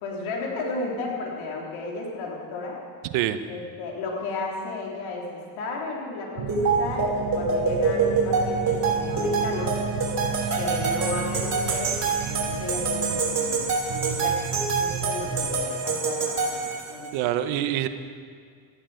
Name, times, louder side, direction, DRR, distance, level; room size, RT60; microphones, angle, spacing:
voice 1, 0.0-2.8 3.5-9.8 10.5-17.1, left 3 dB, 80° left, -2 dB, 3.9 m, -34 dB
sound 1, 6.4-15.7, right 8 dB, 65° right, 1.5 m, -33 dB
sound 2, 6.5-17.1, right 4 dB, 40° right, 5.2 m, -26 dB
voice 2, 17.1-17.9, right 12 dB, 85° right, 10 dB, 1.0 m, -25 dB
18.5 x 14.0 x 5.1 m, 2.1 s
supercardioid pair, 85°, 47 cm